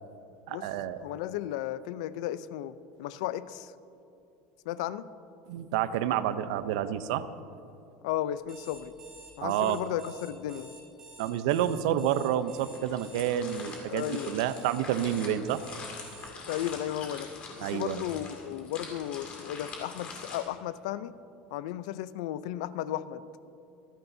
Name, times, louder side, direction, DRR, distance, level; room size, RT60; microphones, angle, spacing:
voice 1, 0.5-1.0 5.5-7.3 9.4-9.8 11.2-15.6 17.6-18.0, right 10 dB, 85° right, 12 dB, 0.6 m, -29 dB
voice 2, 1.0-2.7 3.0-3.7 4.7-5.1 8.0-8.9 9.4-10.8 13.9-14.4 16.5-17.3 17.7-21.1 21.5-23.2, left 12 dB, 85° left, 15 dB, 0.5 m, -34 dB
Alarm, 8.4-16.8, right 4 dB, 20° right, 3.3 m, -50 dB
sound 1, 12.4-20.4, left 4 dB, 35° left, 2.4 m, -44 dB
26.0 x 10.0 x 2.7 m, 2.8 s
cardioid pair, 170°, 4 cm